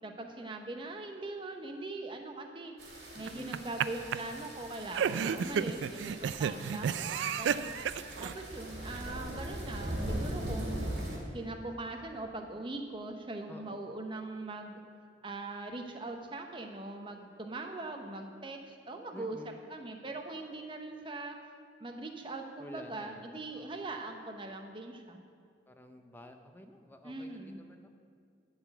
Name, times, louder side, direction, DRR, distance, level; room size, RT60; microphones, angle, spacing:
voice 1, 0.0-2.7 3.1-7.7 8.2-10.8 11.3-14.8 15.2-21.4 21.8-25.2 27.0-27.6, right 2 dB, 25° right, 4 dB, 0.8 m, -41 dB
sound 1, 2.8-11.2, right 1 dB, 60° right, 2.2 m, -40 dB
voice 2, 3.1-3.6 5.0-5.5 13.5-13.8 19.1-19.5 22.6-23.3 23.5-23.8 25.7-27.9, left 1 dB, 10° left, 6 dB, 0.5 m, -51 dB
sound 2, 3.3-3.9 4.1-4.2 4.9-8.3, right 7 dB, 75° right, 0.3 m, -31 dB
11.5 x 4.1 x 7.9 m, 2.2 s
head